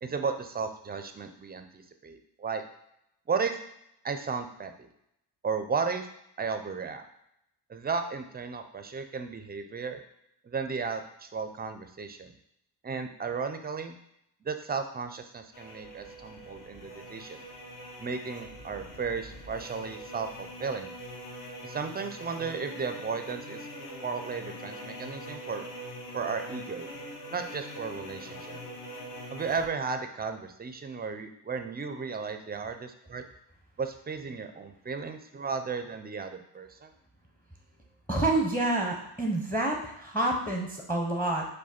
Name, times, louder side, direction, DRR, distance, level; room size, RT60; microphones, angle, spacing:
voice 1, 0.0-2.6 3.3-3.6 4.0-4.9 5.4-6.1 6.4-7.1 7.7-10.0 10.4-12.3 12.8-13.9 14.4-17.5 18.0-20.9 21.6-23.7 24.0-25.6 26.1-26.9 27.3-28.6 29.3-33.2 33.8-36.9, right 5 dB, 20° right, 7 dB, 0.5 m, -34 dB
sound 1, 15.5-29.7, equal, 45° left, 1.1 m, -43 dB
voice 2, 38.1-41.5, right 2 dB, 5° left, 1 dB, 0.8 m, -28 dB
5.0 x 2.3 x 4.3 m, 0.79 s
supercardioid pair, 70°, 46 cm